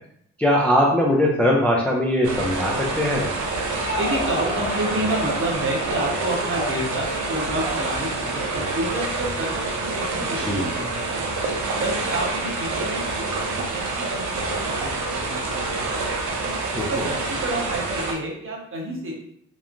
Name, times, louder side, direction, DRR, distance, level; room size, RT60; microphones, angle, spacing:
voice 1, 0.4-3.3 10.4-10.7 16.8-16.9, left 1 dB, 5° left, -2 dB, 0.4 m, -20 dB
sound 1, 2.2-18.1, right 3 dB, 70° right, 0.6 m, -27 dB
Crowd, 3.4-9.3, left 1 dB, 40° left, 1.0 m, -33 dB
voice 2, 4.0-11.3 11.8-15.6 15.9-16.1 16.7-19.1, right 1 dB, 45° right, -2 dB, 0.9 m, -30 dB
3.0 x 2.0 x 2.5 m, 0.69 s
cardioid pair, 90°, 30 cm